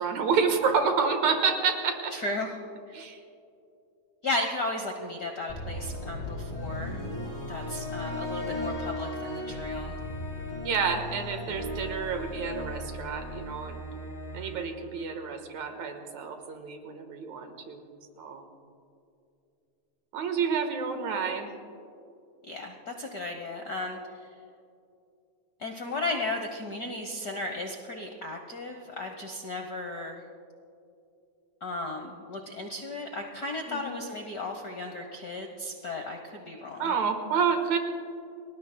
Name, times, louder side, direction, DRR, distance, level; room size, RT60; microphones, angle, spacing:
voice 1, 0.0-2.1 2.9-3.2 10.6-13.8 14.3-17.8 18.2-18.4 20.1-21.5 33.7-34.0 36.8-37.8, right 5 dB, 70° right, 5 dB, 2.7 m, -29 dB
voice 2, 2.1-2.6 2.9-3.0 4.2-7.0 7.5-9.9 22.4-24.3 25.6-30.2 31.6-36.9, left 2 dB, 75° left, 3 dB, 0.8 m, -35 dB
sound 1, 5.5-15.7, left 1 dB, 10° left, 3.4 m, -37 dB
29.5 x 20.0 x 2.2 m, 2.6 s
omnidirectional pair, 3.3 m